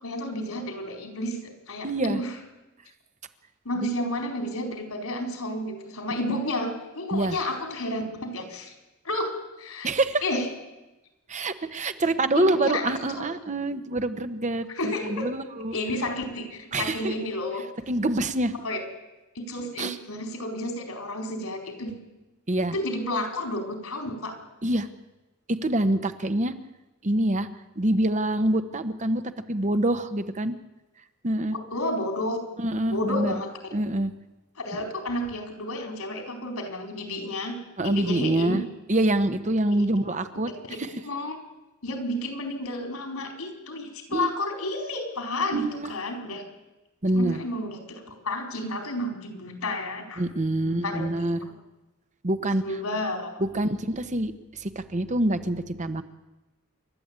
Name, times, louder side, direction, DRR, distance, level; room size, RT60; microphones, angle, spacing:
voice 1, 0.0-2.4 3.6-8.7 9.0-9.9 10.2-10.5 12.3-12.9 14.7-15.3 15.7-17.6 18.6-18.8 19.3-21.9 22.7-24.4 31.5-32.4 32.9-33.5 34.6-38.6 39.7-39.8 40.7-40.8 41.0-41.4 41.8-46.4 47.1-50.2 50.6-51.3 52.6-53.3, left 1 dB, 90° left, 4 dB, 4.5 m, -31 dB
voice 2, 1.8-2.2 3.8-3.9 7.1-7.4 9.8-10.2 11.3-15.8 16.7-17.1 17.9-18.5 19.8-20.0 22.5-22.7 24.6-24.9 25.5-26.5 27.0-27.5 27.8-29.2 29.5-30.5 31.2-31.6 32.6-33.4 33.7-34.1 37.8-38.6 38.9-40.5 40.8-40.9 44.1-44.3 45.5-45.9 47.0-47.4 50.2-51.4 52.2-52.6 53.4-56.0, right 1 dB, 35° right, 10 dB, 1.1 m, -25 dB
27.5 x 12.0 x 8.9 m, 1.1 s
head